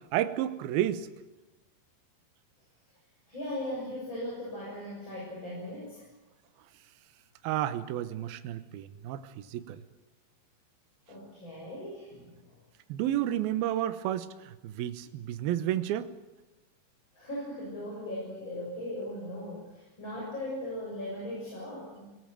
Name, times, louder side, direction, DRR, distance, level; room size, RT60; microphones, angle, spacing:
voice 1, 0.1-1.1 7.4-9.8 12.9-16.1, right 12 dB, 70° right, 11 dB, 2.6 m, -31 dB
voice 2, 3.3-6.1 11.1-12.6 17.1-22.1, left 1 dB, 25° left, -4 dB, 7.8 m, -38 dB
23.0 x 18.5 x 9.1 m, 1.1 s
omnidirectional pair, 5.2 m